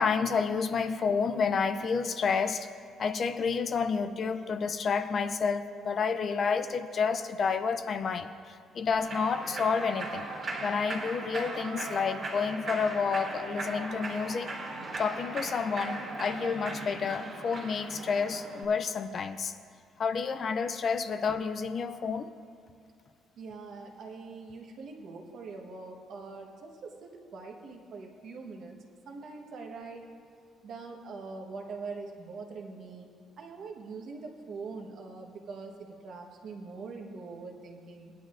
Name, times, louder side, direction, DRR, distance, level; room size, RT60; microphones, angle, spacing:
voice 1, 0.0-2.7 3.0-10.3 10.6-14.5 15.0-19.6 20.0-22.3, left 5 dB, 35° left, 10 dB, 0.4 m, -30 dB
Human voice / Clapping / Cheering, 8.9-18.6, right 2 dB, 25° right, 1.9 m, -38 dB
voice 2, 23.4-28.8 29.0-30.1 30.6-33.1 33.4-38.1, right 4 dB, 50° right, 1 dB, 1.2 m, -43 dB
18.5 x 10.0 x 2.5 m, 2.3 s
cardioid pair, 175°, 0 cm